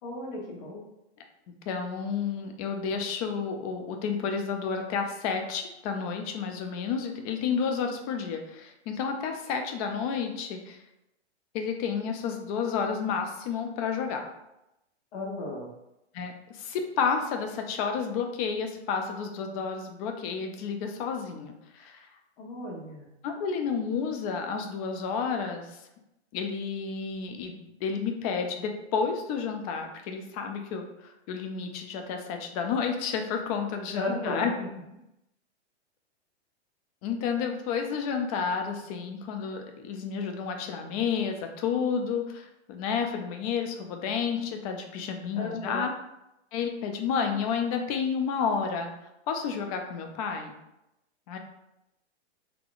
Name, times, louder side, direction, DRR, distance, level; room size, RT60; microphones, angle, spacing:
voice 1, 0.0-0.8 15.1-15.7 22.4-23.1 33.9-34.7 45.3-45.8, left 2 dB, 50° left, -2 dB, 1.1 m, -34 dB
voice 2, 1.7-10.8 11.5-14.3 16.1-22.1 23.2-25.8 26.3-34.5 37.0-45.9 46.5-48.9 49.3-50.5 51.3-51.4, left 6 dB, 35° left, 4 dB, 0.5 m, -31 dB
4.0 x 2.8 x 2.4 m, 0.88 s
hypercardioid pair, 125°, 34 cm